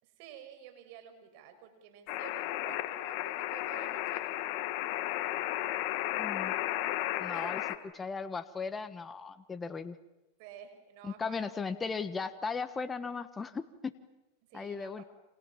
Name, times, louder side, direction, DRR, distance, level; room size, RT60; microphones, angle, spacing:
voice 1, 0.0-4.3 7.3-7.7 10.4-11.8 14.5-15.1, right 9 dB, 60° right, 8 dB, 6.1 m, -51 dB
sound 1, 2.1-7.8, left 15 dB, 55° left, 1.8 m, -34 dB
voice 2, 6.2-6.6 7.2-7.6 7.9-10.0 11.0-13.9 14.5-15.0, left 5 dB, 15° left, 11 dB, 1.3 m, -37 dB
29.5 x 27.0 x 7.3 m, 1.0 s
hypercardioid pair, 120°, 0 cm